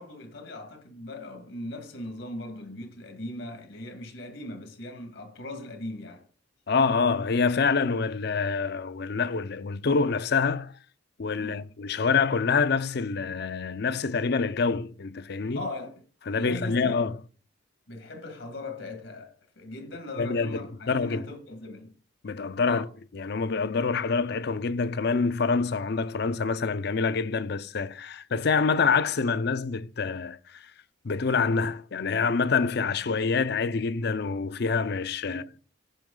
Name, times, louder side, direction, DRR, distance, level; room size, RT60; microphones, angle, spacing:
voice 1, 0.0-6.2 11.4-11.7 15.5-16.0 16.3-17.1 17.9-22.0 22.6-22.8 35.3-35.6, left 2 dB, 80° left, 1.9 m, -39 dB
voice 2, 6.7-10.7 11.2-15.7 16.3-17.1 20.2-21.2 22.2-22.9 23.1-30.6 31.0-35.4, left 5 dB, 60° left, 0.6 m, -26 dB
15.5 x 6.3 x 3.8 m
head